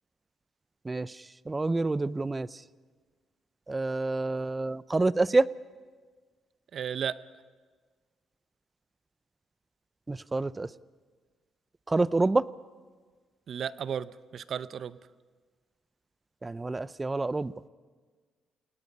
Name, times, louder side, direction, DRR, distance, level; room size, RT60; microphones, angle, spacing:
voice 1, 1.5-2.5 3.7-5.5 10.1-10.7 11.9-12.4 16.4-17.5, right 2 dB, 20° right, 18 dB, 0.5 m, -27 dB
voice 2, 6.7-7.2 13.5-15.0, right 8 dB, 60° right, 15 dB, 0.7 m, -34 dB
29.5 x 18.5 x 5.5 m, 1.5 s
cardioid pair, 90°, 0 cm